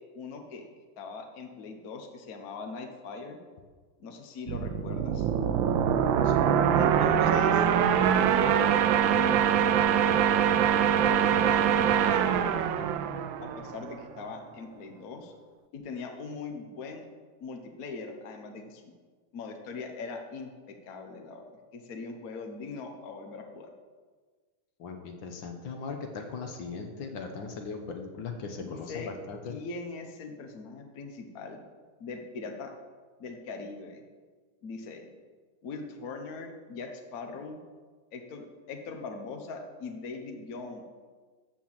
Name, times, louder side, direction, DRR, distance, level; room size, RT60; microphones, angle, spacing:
voice 1, 0.1-0.6 1.0-3.4 4.0-5.3 6.8-10.4 11.0-12.3 13.4-15.3 15.7-17.1 17.4-18.8 19.3-21.4 21.7-23.7 28.6-29.1 29.5-31.6 32.0-32.7 33.2-34.0 34.6-35.1 35.6-37.6 38.1-40.8, left 4 dB, 50° left, 4 dB, 1.4 m, -40 dB
sound 1, 4.5-14.0, right 9 dB, 75° right, 1.3 m, -24 dB
voice 2, 6.1-6.9 24.8-29.6, left 4 dB, 75° left, 4 dB, 1.7 m, -39 dB
13.0 x 4.6 x 7.4 m, 1.4 s
omnidirectional pair, 2.2 m